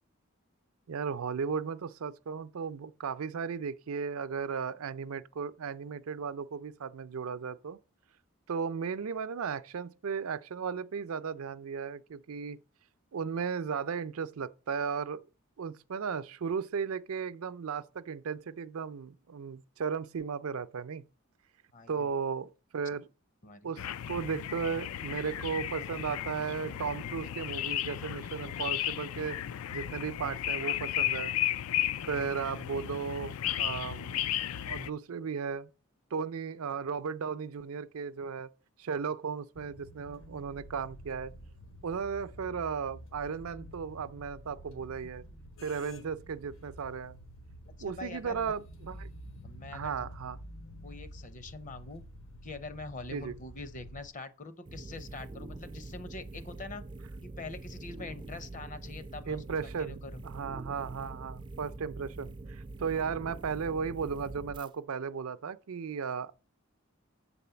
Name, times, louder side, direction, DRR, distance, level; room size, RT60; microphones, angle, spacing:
voice 1, 0.9-7.8 8.5-12.6 13.1-15.2 15.6-21.0 21.9-23.1 23.6-29.4 29.7-31.3 32.1-34.2 34.7-35.7 36.1-38.5 38.8-41.3 41.8-45.2 45.6-47.2 47.8-49.1 49.7-50.4 53.1-53.3 59.3-66.3, right 6 dB, 80° right, 0.5 m, -35 dB
voice 2, 21.7-22.1 23.4-23.7 47.9-48.5 49.4-50.1 50.8-52.0 52.4-56.8 57.2-60.2, left 3 dB, 35° left, 0.7 m, -44 dB
sound 1, 23.8-34.9, left 12 dB, 90° left, 0.4 m, -34 dB
sound 2, 39.5-54.1, equal, 70° left, 1.4 m, -49 dB
sound 3, 54.6-64.7, right 2 dB, 20° right, 0.3 m, -44 dB
7.5 x 4.2 x 6.9 m
head